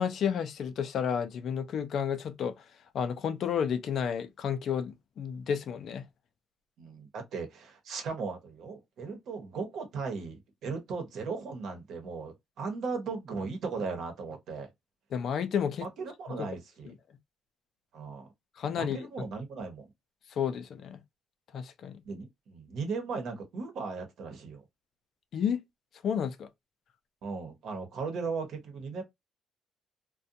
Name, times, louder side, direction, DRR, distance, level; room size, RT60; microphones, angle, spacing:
voice 1, 0.0-2.7 2.9-6.0 15.1-15.9 18.6-19.1 20.4-21.0 21.5-22.0 25.3-25.6 26.0-26.5, left 7 dB, 65° left, 0.4 m, -31 dB
voice 2, 6.8-14.7 15.8-17.0 17.9-18.3 18.7-19.9 22.0-24.7 27.2-29.0, right 4 dB, 75° right, 0.9 m, -37 dB
2.5 x 2.2 x 2.6 m
cardioid pair, 90°, 0 cm